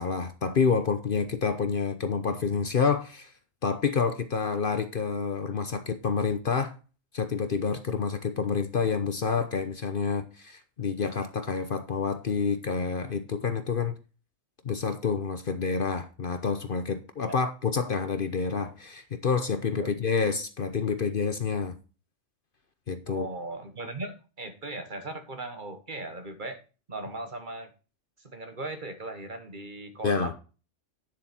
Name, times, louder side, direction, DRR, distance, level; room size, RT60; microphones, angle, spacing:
voice 1, 0.0-3.3 3.6-6.7 7.1-13.9 14.6-21.8 22.9-23.3 30.0-30.3, left 5 dB, 50° left, 0.9 m, -28 dB
voice 2, 23.1-26.6 26.9-27.7 28.2-30.3, right 2 dB, 40° right, 1.4 m, -38 dB
9.9 x 7.1 x 4.3 m
omnidirectional pair, 1.3 m